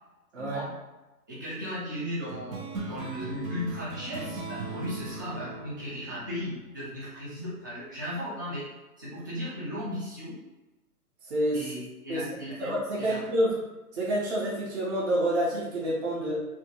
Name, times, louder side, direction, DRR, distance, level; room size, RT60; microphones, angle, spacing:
voice 1, 0.4-0.7 1.3-8.7 9.0-10.4 11.5-13.2, equal, 15° right, -9 dB, 0.4 m, -36 dB
sound 1, 2.3-7.2, right 2 dB, 60° right, 0.9 m, -39 dB
voice 2, 11.3-11.7 12.1-12.2 12.6-13.6 13.9-16.4, right 1 dB, 45° right, -5 dB, 1.2 m, -28 dB
3.5 x 2.3 x 2.9 m, 1.1 s
figure-of-eight pair, 130°, 46 cm